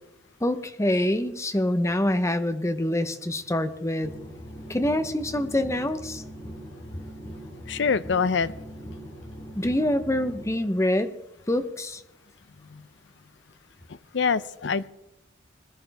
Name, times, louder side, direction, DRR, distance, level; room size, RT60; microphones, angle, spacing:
voice 1, 0.4-4.1 4.7-6.2 9.6-11.1 11.5-12.0, left 1 dB, 15° left, 10 dB, 0.7 m, -25 dB
sound 1, 4.0-10.5, equal, 30° left, 4.2 m, -41 dB
voice 2, 7.7-8.5 12.7-12.8 14.1-14.9, left 5 dB, 70° left, 16 dB, 0.6 m, -25 dB
20.5 x 12.5 x 3.5 m, 0.89 s
head